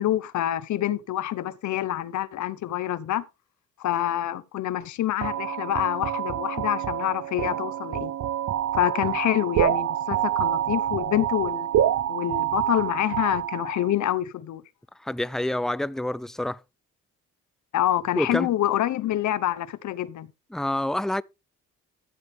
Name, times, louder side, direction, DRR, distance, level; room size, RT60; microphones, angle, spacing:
voice 1, 0.0-3.2 3.8-8.1 8.7-11.7 12.1-14.6 17.7-20.3, left 12 dB, 70° left, 1.0 m, -26 dB
sound 1, 5.2-13.9, right 11 dB, 65° right, 0.9 m, -27 dB
voice 2, 15.0-16.6 18.2-18.5 20.5-21.2, left 1 dB, ahead, 0.4 m, -27 dB
14.0 x 7.8 x 3.6 m
cardioid pair, 90°, 30 cm